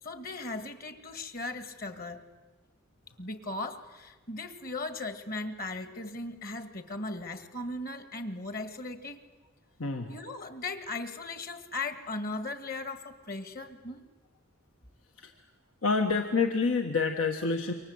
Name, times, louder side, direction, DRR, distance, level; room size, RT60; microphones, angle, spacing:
voice 1, 0.0-2.2 3.2-9.2 10.1-14.0, left 2 dB, 45° left, 9 dB, 1.9 m, -38 dB
voice 2, 9.8-10.1 15.2-15.3 15.8-17.7, left 4 dB, 85° left, 4 dB, 1.5 m, -27 dB
27.5 x 24.0 x 8.0 m, 1.3 s
head